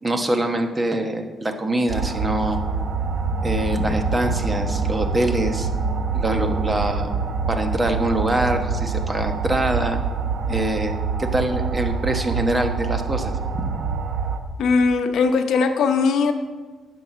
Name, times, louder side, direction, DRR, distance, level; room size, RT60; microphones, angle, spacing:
voice 1, 0.0-2.6 3.4-5.7 6.1-7.1 7.5-10.0 10.5-13.8, right 1 dB, 20° right, 5 dB, 1.1 m, -24 dB
sound 1, 1.9-14.4, right 5 dB, 60° right, 0.8 m, -26 dB
sound 2, 2.4-10.7, left 1 dB, 40° left, 0.7 m, -35 dB
voice 2, 14.6-16.3, left 4 dB, 75° left, 7 dB, 0.8 m, -19 dB
9.8 x 4.8 x 6.8 m, 1.3 s
cardioid pair, 90°, 0 cm